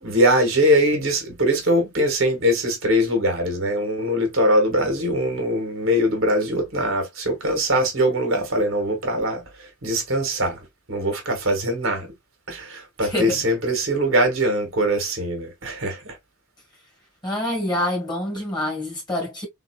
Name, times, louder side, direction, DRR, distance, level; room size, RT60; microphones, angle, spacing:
voice 1, 0.0-9.4 9.8-10.6 10.9-12.1 12.5-16.1, equal, 65° right, 1.3 m, -22 dB
voice 2, 13.0-13.4 17.2-19.5, left 1 dB, 20° left, 1.7 m, -26 dB
3.7 x 2.7 x 2.2 m
head